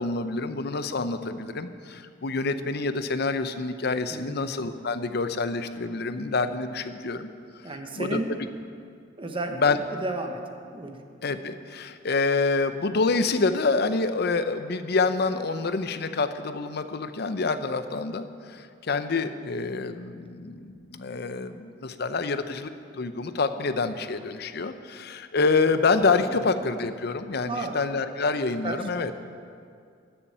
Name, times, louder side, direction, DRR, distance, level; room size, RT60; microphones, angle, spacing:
voice 1, 0.0-7.3 8.0-8.2 9.6-9.8 11.2-29.3, left 4 dB, 60° left, 10 dB, 0.7 m, -27 dB
voice 2, 4.1-4.5 7.6-8.3 9.2-10.4 10.7-11.0 26.2-26.4 27.5-27.8 28.6-28.9, right 2 dB, 30° right, 5 dB, 1.1 m, -33 dB
13.0 x 7.0 x 8.6 m, 2.3 s
head